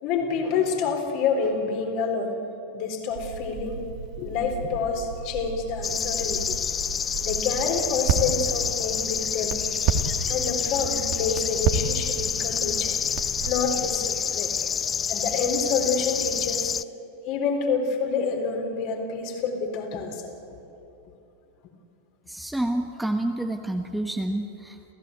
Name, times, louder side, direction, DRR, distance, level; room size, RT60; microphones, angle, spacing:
voice 1, 0.0-2.3 2.7-3.8 4.2-6.6 7.2-9.6 10.3-13.0 13.4-14.5 15.1-16.7 17.3-20.3, left 5 dB, 45° left, 3 dB, 3.9 m, -28 dB
Crackle, 3.1-14.0, right 6 dB, 45° right, 2.2 m, -32 dB
sound 1, 5.8-16.8, left 7 dB, 20° left, 0.4 m, -28 dB
voice 2, 22.3-24.9, right 1 dB, 5° right, 4 dB, 1.3 m, -29 dB
30.0 x 16.0 x 9.4 m, 2.9 s
figure-of-eight pair, 90°, 0 cm